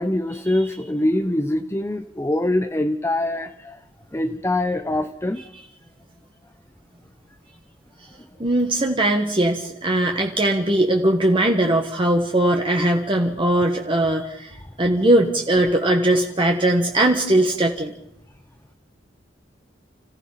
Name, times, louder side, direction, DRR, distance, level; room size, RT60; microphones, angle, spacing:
voice 1, 0.0-3.8 4.1-5.4, left 1 dB, 15° left, 7 dB, 0.7 m, -23 dB
voice 2, 8.4-17.9, right 1 dB, 30° right, 2 dB, 1.5 m, -20 dB
29.5 x 15.5 x 5.7 m, 0.80 s
head